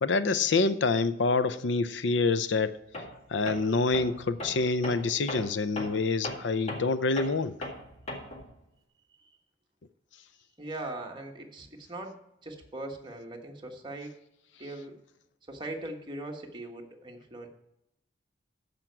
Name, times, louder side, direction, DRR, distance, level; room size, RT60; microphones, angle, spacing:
voice 1, 0.0-2.8 3.3-7.5, left 3 dB, 85° left, 14 dB, 0.6 m, -26 dB
Tools, 2.9-3.2 3.5-8.5, left 1 dB, 35° left, 1.8 m, -39 dB
voice 2, 10.6-14.1 14.6-14.9 15.5-17.5, right 2 dB, 25° right, 2 dB, 1.4 m, -40 dB
13.5 x 5.3 x 4.6 m, 0.85 s
head